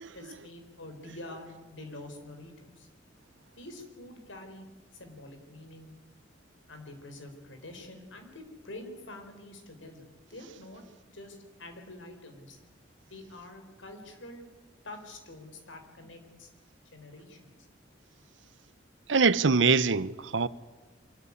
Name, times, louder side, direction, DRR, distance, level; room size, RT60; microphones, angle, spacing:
voice 1, 0.1-2.9 3.6-4.7 4.9-5.9 6.7-12.6 13.1-14.4 14.8-16.5 16.9-17.6, left 1 dB, 90° left, 4.3 m, -46 dB
voice 2, 19.1-20.5, right 4 dB, 75° right, 0.8 m, -23 dB
24.5 x 13.5 x 9.8 m
head